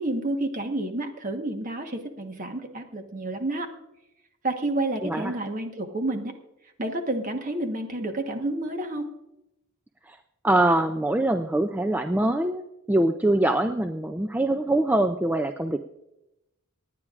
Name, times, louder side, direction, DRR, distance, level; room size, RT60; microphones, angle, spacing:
voice 1, 0.0-3.7 4.4-6.3 6.8-9.1, right 2 dB, 40° right, 5 dB, 1.2 m, -29 dB
voice 2, 5.0-5.3 10.0-10.2 10.4-15.8, right 1 dB, 10° right, 5 dB, 0.3 m, -24 dB
26.0 x 9.8 x 2.4 m, 0.90 s
head